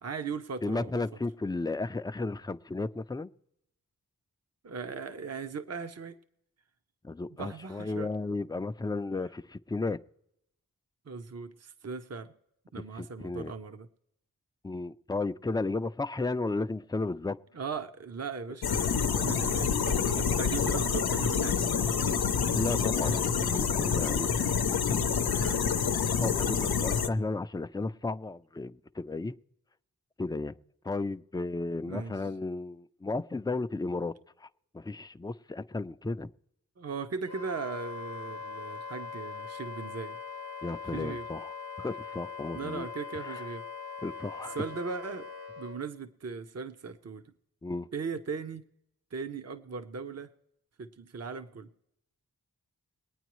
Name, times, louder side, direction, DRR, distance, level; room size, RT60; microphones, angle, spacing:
voice 1, 0.0-1.0 4.6-6.2 7.4-8.1 11.1-12.3 12.7-13.9 17.5-22.2 23.0-23.3 25.4-25.6 31.9-32.1 36.8-40.2 40.9-41.3 42.5-43.6 44.5-45.3 45.6-47.2 47.9-48.6 49.1-50.3 50.8-51.7, right 5 dB, 45° right, 0.8 m, -38 dB
voice 2, 0.6-3.3 7.0-10.0 12.7-13.5 14.6-17.4 22.6-24.8 25.2-25.6 26.2-29.3 30.2-30.5 30.8-34.5 34.7-36.3 40.6-41.5 41.8-42.9 43.2-43.4 44.0-44.6 47.6-47.9, left 3 dB, 10° left, 0.4 m, -34 dB
sound 1, 18.6-27.1, left 6 dB, 90° left, 0.7 m, -27 dB
Wind instrument woodwind instrument, 37.3-45.8, left 5 dB, 80° right, 2.3 m, -41 dB
22.5 x 9.2 x 3.1 m
cardioid pair, 50°, 36 cm